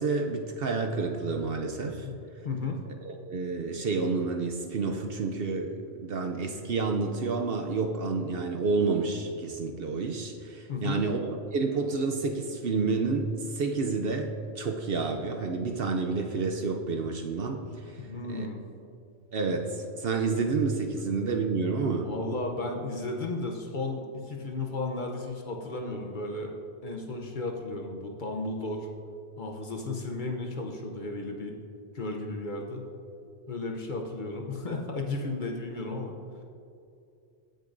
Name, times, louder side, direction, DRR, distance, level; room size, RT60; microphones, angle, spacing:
voice 1, 0.0-2.1 3.0-14.3 14.6-18.0 18.3-18.5 19.3-22.1, right 4 dB, 60° right, 4 dB, 0.8 m, -29 dB
voice 2, 2.4-2.8 10.7-11.0 18.0-18.6 22.0-26.5 26.8-28.9 29.4-31.6 31.9-32.8 33.5-36.1, left 2 dB, 45° left, 2 dB, 0.8 m, -34 dB
15.5 x 6.5 x 2.6 m, 2.5 s
omnidirectional pair, 1.2 m